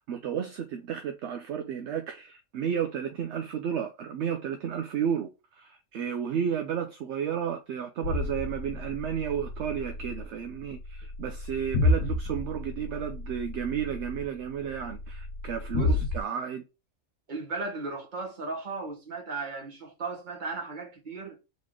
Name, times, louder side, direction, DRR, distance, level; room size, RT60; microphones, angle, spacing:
voice 1, 0.0-5.3 5.6-16.6, right 8 dB, 65° right, 0.8 m, -32 dB
sound 1, 8.0-16.2, left 2 dB, 85° left, 1.4 m, -31 dB
voice 2, 17.3-21.4, right 3 dB, 35° right, 1.4 m, -36 dB
4.1 x 3.1 x 3.7 m
omnidirectional pair, 1.4 m